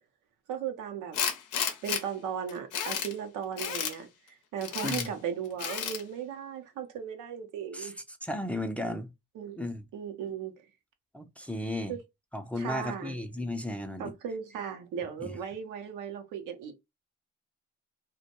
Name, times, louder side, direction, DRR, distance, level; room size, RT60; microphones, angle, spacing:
voice 1, 0.5-1.2 1.8-4.1 4.5-7.9 9.3-9.6 9.9-10.5 11.9-12.0 12.6-13.1 14.0-16.7, right 8 dB, 80° right, 0.6 m, -36 dB
Tools, 1.1-2.0 2.5-3.1 3.6-3.9 4.6-5.1 5.6-6.0, left 8 dB, 75° left, 0.6 m, -32 dB
voice 2, 4.8-5.1 7.7-7.9 8.2-9.1 9.6-9.8 11.1-12.0 12.3-14.1 15.2-15.3, left 1 dB, 5° left, 0.5 m, -34 dB
2.2 x 2.1 x 2.8 m
supercardioid pair, 50°, 31 cm